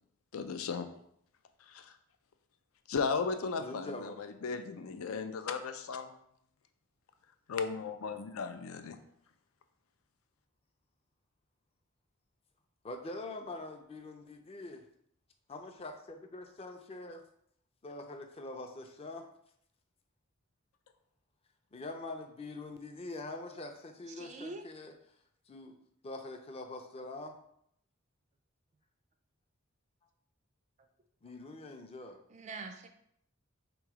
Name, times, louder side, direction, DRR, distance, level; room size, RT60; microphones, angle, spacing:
voice 1, 0.3-0.9 1.7-1.9 2.9-6.1 7.5-9.0, left 5 dB, 85° left, 9 dB, 0.5 m, -36 dB
voice 2, 3.6-4.2 12.8-14.8 15.5-17.2 17.8-19.3 21.7-24.9 25.5-25.8 26.0-27.4 31.2-32.2, left 2 dB, 30° left, 5 dB, 0.5 m, -44 dB
voice 3, 24.2-24.6 32.3-32.9, right 3 dB, 35° right, 6 dB, 0.3 m, -44 dB
3.6 x 3.0 x 4.7 m, 0.71 s
head